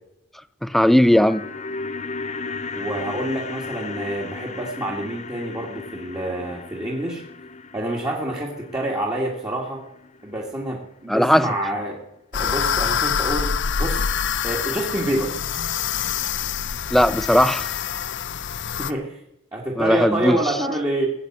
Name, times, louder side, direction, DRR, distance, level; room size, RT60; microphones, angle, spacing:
voice 1, 0.6-1.5 11.1-11.5 16.9-17.8 19.8-20.4, equal, ahead, 0.5 m, -17 dB
sound 1, 0.9-11.0 11.3-11.4, left 3 dB, 35° left, 0.8 m, -36 dB
voice 2, 2.7-7.2 7.7-9.8 10.2-12.0 12.3-13.5 13.8-14.0 14.4-15.3 18.8-19.2 19.5-21.1, right 1 dB, 20° right, 2.2 m, -27 dB
sound 2, 12.3-18.9, left 7 dB, 60° left, 0.6 m, -25 dB
17.5 x 8.8 x 7.5 m
head